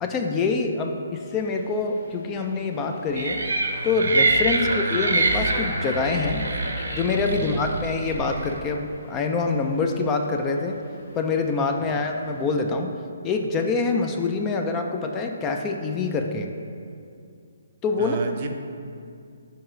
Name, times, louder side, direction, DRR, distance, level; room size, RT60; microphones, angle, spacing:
voice 1, 0.0-3.4 3.8-6.5 6.9-10.8 11.1-13.0 13.2-16.5 17.8-18.2, left 4 dB, 20° left, 4 dB, 0.3 m, -25 dB
Subway metro underground, 1.2-12.7, left 2 dB, 55° left, 0.8 m, -42 dB
sound 1, 3.2-8.6, right 3 dB, 75° right, 0.8 m, -25 dB
voice 2, 18.0-18.5, right 4 dB, 40° right, 5 dB, 0.5 m, -34 dB
4.6 x 3.8 x 5.5 m, 2.4 s
hypercardioid pair, 150°, 0 cm